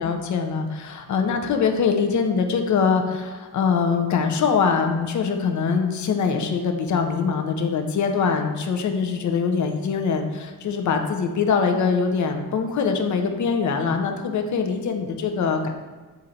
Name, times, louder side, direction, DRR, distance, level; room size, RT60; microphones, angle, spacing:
voice 1, 0.0-15.7, left 5 dB, 50° left, 5 dB, 0.5 m, -23 dB
3.8 x 2.6 x 4.3 m, 1.3 s
cardioid pair, 100°, 39 cm